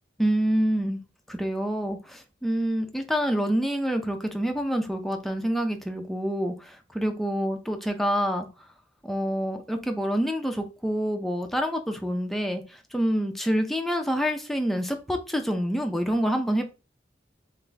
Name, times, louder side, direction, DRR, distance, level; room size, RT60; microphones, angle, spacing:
voice 1, 0.2-1.0 1.3-8.5 9.0-16.7, equal, ahead, 4 dB, 0.5 m, -27 dB
3.5 x 2.5 x 3.3 m, 0.31 s
head